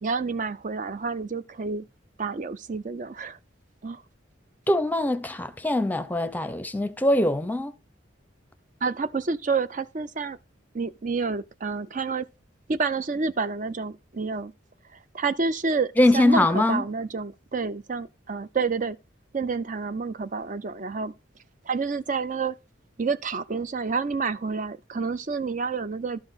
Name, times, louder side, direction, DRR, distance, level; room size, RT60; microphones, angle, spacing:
voice 1, 0.0-1.8 2.2-3.4 3.8-4.0 8.8-10.4 10.7-12.3 12.7-14.5 15.1-19.0 19.3-21.1 21.7-22.5 23.0-26.2, right 4 dB, 40° right, 0.5 m, -29 dB
voice 2, 4.7-7.7 16.0-16.8, left 1 dB, 10° left, 0.7 m, -22 dB
12.5 x 5.8 x 4.1 m
head